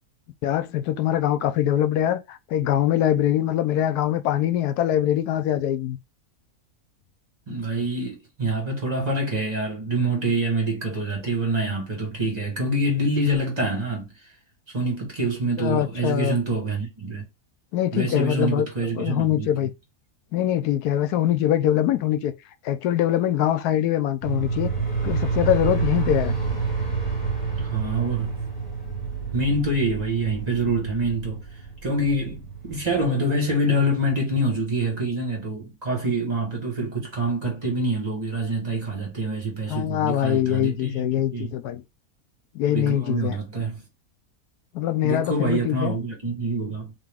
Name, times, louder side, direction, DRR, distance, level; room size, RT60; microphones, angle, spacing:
voice 1, 0.4-6.0 15.6-16.4 17.7-18.7 18.9-19.7 20.3-22.3 22.6-24.7 25.0-26.4 39.7-41.8 42.5-43.4 44.7-45.9, left 11 dB, 85° left, 1.1 m, -23 dB
voice 2, 7.5-14.1 14.7-17.2 17.9-19.5 27.6-28.4 29.3-31.4 31.8-41.5 42.6-43.8 45.0-46.9, right 1 dB, 25° right, 1.6 m, -26 dB
sound 1, 24.2-33.1, right 5 dB, 60° left, 2.3 m, -28 dB
3.8 x 2.9 x 3.5 m
omnidirectional pair, 1.6 m